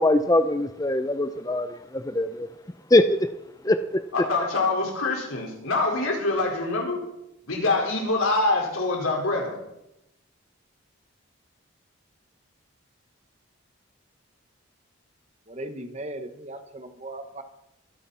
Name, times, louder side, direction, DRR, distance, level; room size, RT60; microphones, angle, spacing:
voice 1, 0.0-1.8 2.0-2.5 2.9-3.0 3.6-4.0, left 1 dB, 15° left, 0.6 m, -21 dB
voice 2, 4.1-7.0 7.4-9.6, left 2 dB, 85° left, 4.7 m, -25 dB
voice 3, 15.5-17.4, right 1 dB, 35° right, 1.4 m, -37 dB
24.5 x 11.5 x 4.3 m
head